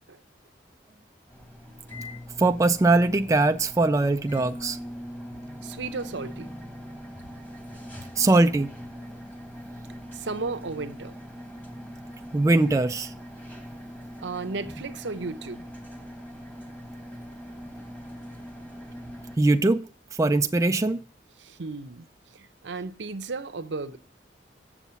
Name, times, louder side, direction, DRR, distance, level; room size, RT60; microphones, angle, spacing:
sound 1, 1.3-19.4, equal, 10° left, 1.6 m, -41 dB
voice 1, 2.4-4.8 8.2-8.7 12.3-13.1 19.4-19.8 20.2-21.0, right 2 dB, 15° right, 0.3 m, -21 dB
voice 2, 5.6-6.5 10.1-11.1 14.2-15.6 21.4-22.1 22.3-24.0, right 3 dB, 75° right, 0.7 m, -34 dB
7.1 x 7.1 x 5.6 m
head